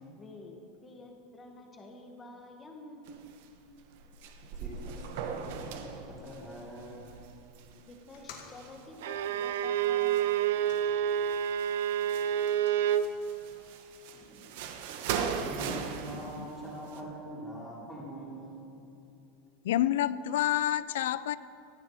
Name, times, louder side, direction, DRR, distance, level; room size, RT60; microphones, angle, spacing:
voice 1, 0.2-3.4 7.9-10.3, left 2 dB, 15° left, 1.5 m, -49 dB
sound 1, 3.1-3.5 3.8-9.3 9.8-10.8 11.1-12.5 12.9-17.0, right 6 dB, 55° right, 1.2 m, -39 dB
voice 2, 4.5-7.2 14.1-14.6 15.4-18.8, right 1 dB, 5° right, 3.7 m, -44 dB
sound 2, 8.0-11.5 11.8-13.8, left 6 dB, 55° left, 2.0 m, -56 dB
Bowed string instrument, 9.0-13.1, right 10 dB, 85° right, 0.6 m, -28 dB
voice 3, 19.6-21.4, left 12 dB, 90° left, 0.4 m, -28 dB
17.5 x 14.0 x 4.8 m
supercardioid pair, 180°, 0 cm